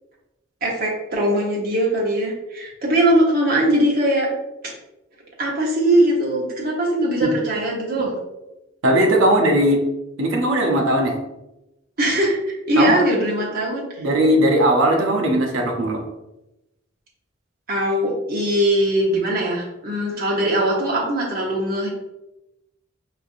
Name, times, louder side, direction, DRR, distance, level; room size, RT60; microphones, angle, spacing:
voice 1, 0.6-4.3 5.4-8.1 12.0-14.0 17.7-21.9, right 1 dB, 50° right, -3 dB, 1.0 m, -21 dB
voice 2, 8.8-9.8 10.2-11.1 12.8-13.0 14.0-16.0, right 1 dB, 85° right, 1 dB, 0.6 m, -18 dB
4.4 x 2.5 x 2.6 m, 0.94 s
head